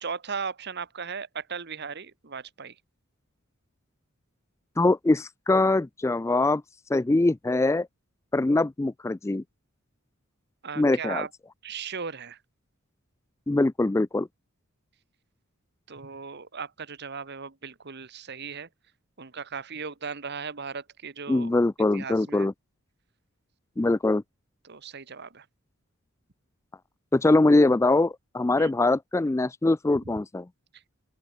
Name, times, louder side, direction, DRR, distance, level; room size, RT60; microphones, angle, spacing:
voice 1, 0.0-2.7 10.6-11.3 11.6-12.4 15.9-18.7 19.2-21.6 21.9-22.5 24.6-25.4 28.6-28.7, right 5 dB, 50° right, 1.4 m, -37 dB
voice 2, 4.8-6.6 6.9-7.9 8.3-9.4 10.8-11.2 13.5-14.3 21.3-22.5 23.8-24.2 27.1-30.4, left 2 dB, 15° left, 0.3 m, -23 dB
open air
head